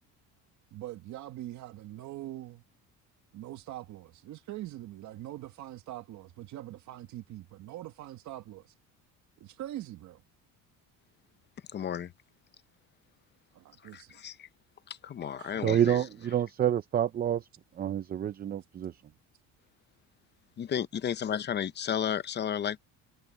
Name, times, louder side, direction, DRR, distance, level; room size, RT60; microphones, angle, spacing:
voice 1, 0.7-2.6 3.3-8.7 9.4-10.2 13.5-14.2 15.4-16.3, right 14 dB, 55° right, 1.6 m, -43 dB
voice 2, 11.7-12.1 13.9-14.5 14.9-16.0 20.6-22.8, left 9 dB, 30° left, 0.8 m, -33 dB
voice 3, 15.6-17.5 17.8-18.9, right 10 dB, 25° right, 0.5 m, -28 dB
cardioid pair, 155°, 34 cm